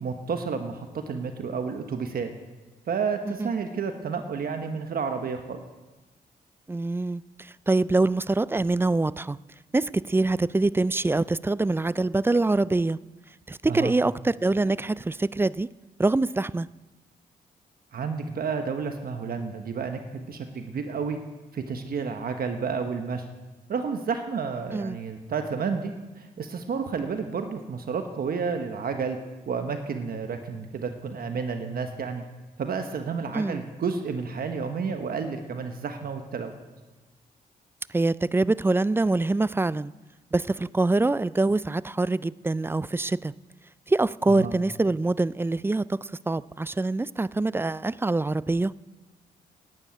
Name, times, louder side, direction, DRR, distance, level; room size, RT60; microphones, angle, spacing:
voice 1, 0.0-2.3 2.9-5.6 13.6-13.9 17.9-21.2 21.5-23.2 23.7-29.2 29.5-32.2 32.6-36.5 44.3-44.5, right 5 dB, 65° right, 1.2 m, -31 dB
voice 2, 6.7-9.4 9.7-13.0 13.5-15.7 16.0-16.7 24.7-25.0 33.3-33.6 37.9-39.9 40.3-43.3 43.9-48.7, right 2 dB, 15° right, 0.3 m, -24 dB
12.0 x 10.0 x 8.9 m
cardioid pair, 65°, 17 cm